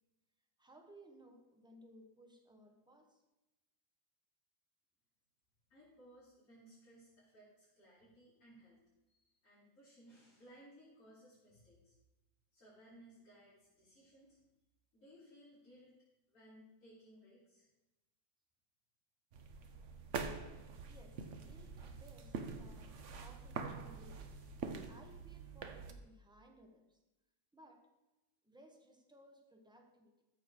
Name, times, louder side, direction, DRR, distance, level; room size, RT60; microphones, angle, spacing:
voice 1, 0.6-3.2 20.9-24.3 24.9-27.0 27.5-27.9 28.4-30.2, equal, 5° right, 3 dB, 0.9 m, -61 dB
voice 2, 5.7-11.9 12.5-14.4 14.9-15.9 16.3-17.7, equal, 45° left, -10 dB, 3.8 m, -61 dB
sound 1, 19.3-25.9, right 5 dB, 55° right, 0.9 m, -45 dB
13.5 x 6.9 x 4.8 m, 1.0 s
omnidirectional pair, 2.1 m